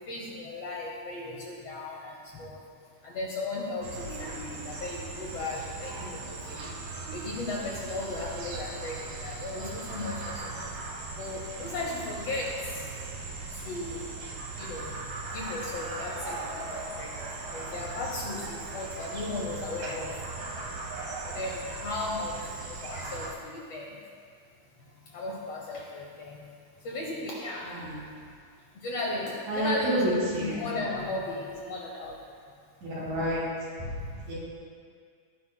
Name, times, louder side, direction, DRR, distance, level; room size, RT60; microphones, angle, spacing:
voice 1, 0.0-2.6 3.0-6.7 7.1-10.7 11.2-12.8 13.5-14.0 14.6-15.0 15.3-17.1 17.5-20.1 21.3-22.4 22.7-23.9 25.1-26.5 26.8-27.8 28.8-32.1, left 2 dB, 75° left, -2 dB, 1.4 m, -36 dB
sound 1, 3.8-23.3, right 3 dB, 75° right, 3.2 m, -38 dB
voice 2, 27.6-28.0 29.5-30.7 32.8-33.4 33.8-34.3, right 1 dB, 60° right, -7 dB, 4.1 m, -30 dB
17.5 x 9.6 x 2.3 m, 2.2 s
omnidirectional pair, 4.2 m